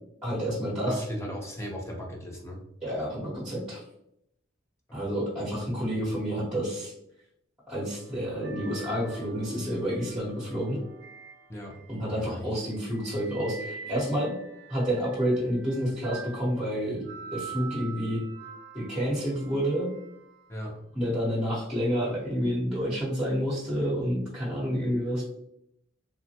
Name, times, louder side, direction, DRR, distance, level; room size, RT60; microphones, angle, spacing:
voice 1, 0.2-1.0 2.8-3.8 4.9-6.9 7.7-10.8 11.9-14.3 14.7-17.0 17.3-18.2 18.7-19.9 20.9-25.2, equal, 5° right, -9 dB, 0.8 m, -29 dB
voice 2, 0.9-2.6 4.9-5.2 11.5-11.8 12.1-12.5 20.5-20.8, equal, 15° left, 0 dB, 0.5 m, -37 dB
sound 1, 7.9-12.2 12.7-20.8 21.8-22.1, right 5 dB, 55° right, 0.4 m, -46 dB
3.2 x 2.0 x 2.7 m, 0.77 s
head